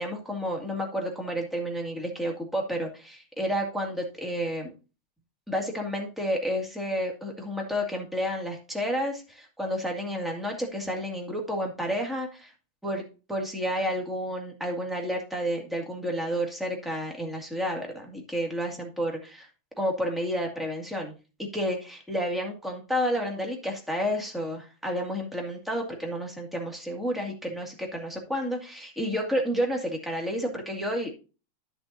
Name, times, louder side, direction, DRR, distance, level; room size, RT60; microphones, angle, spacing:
voice 1, 0.0-4.7 5.5-12.5 12.8-13.0 13.3-19.5 19.8-21.1 21.4-31.1, equal, ahead, 0 dB, 1.3 m, -30 dB
11.5 x 7.2 x 2.6 m, 0.32 s
omnidirectional pair, 3.4 m